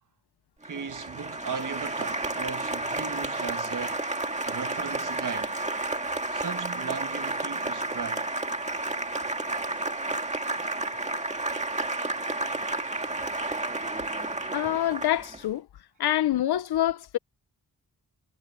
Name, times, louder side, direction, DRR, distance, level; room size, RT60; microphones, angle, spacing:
Applause, 0.6-15.4, right 2 dB, 15° right, 1.8 m, -31 dB
voice 1, 0.6-4.0 4.5-5.6 6.3-8.3, right 6 dB, 50° right, 1.6 m, -37 dB
voice 2, 14.5-15.7 16.0-17.2, left 12 dB, 70° left, 0.7 m, -26 dB
wide cardioid pair, 150°, 40 cm